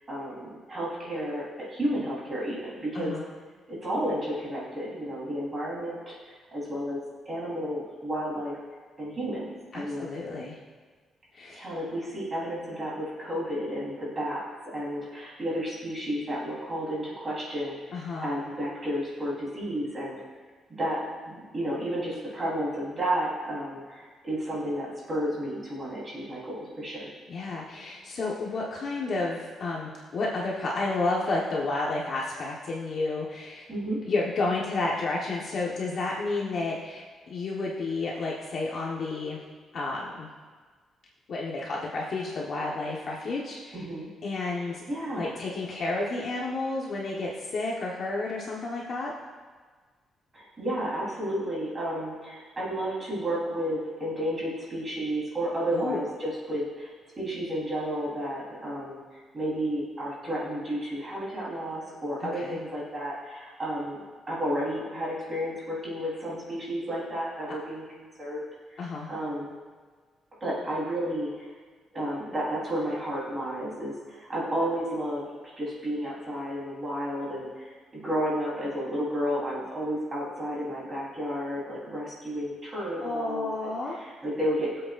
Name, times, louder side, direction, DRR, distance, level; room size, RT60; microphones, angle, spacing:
voice 1, 0.1-3.1 3.7-6.1 6.5-7.0 7.3-8.6 9.0-10.1 11.5-14.4 14.7-18.0 18.2-20.2 20.7-21.0 21.2-27.1 33.7-34.0 43.7-44.1 44.6-45.4 50.3-64.0 64.3-67.8 68.2-68.4 68.7-69.5 70.4-71.5 71.9-75.3 75.6-84.8, equal, 25° right, -6 dB, 3.8 m, -32 dB
voice 2, 9.7-10.6 11.3-11.6 17.9-18.3 27.3-33.7 34.0-39.4 39.7-40.3 41.3-43.7 44.2-44.8 45.1-49.1 55.7-56.0 62.2-62.6 68.8-69.1 83.0-84.0, left 3 dB, 45° left, -4 dB, 1.3 m, -31 dB
22.0 x 7.9 x 2.6 m, 1.5 s
cardioid pair, 175°, 0 cm